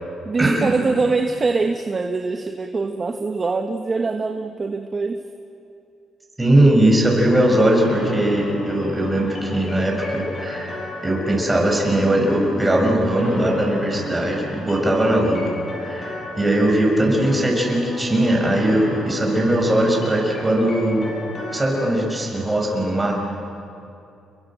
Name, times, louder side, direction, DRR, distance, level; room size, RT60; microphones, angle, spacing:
voice 1, 0.2-5.2, right 3 dB, 35° right, 6 dB, 1.4 m, -23 dB
voice 2, 6.4-10.8 11.0-15.4 15.8-21.1 21.5-23.2, right 1 dB, 15° right, 0 dB, 7.1 m, -19 dB
sound 1, 7.6-22.3, left 2 dB, 45° left, 6.7 m, -32 dB
29.5 x 22.5 x 7.8 m, 2.6 s
cardioid pair, 90°, 0 cm